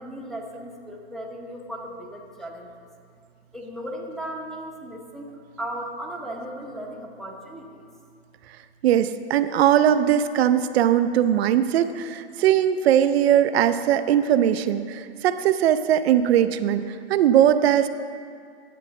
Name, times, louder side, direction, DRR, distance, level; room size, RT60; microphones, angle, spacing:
voice 1, 0.0-2.9 3.5-7.9, right 1 dB, ahead, -2 dB, 0.7 m, -36 dB
voice 2, 8.8-17.9, right 10 dB, 75° right, 10 dB, 0.5 m, -20 dB
10.0 x 7.6 x 3.7 m, 2.3 s
hypercardioid pair, 130°, 32 cm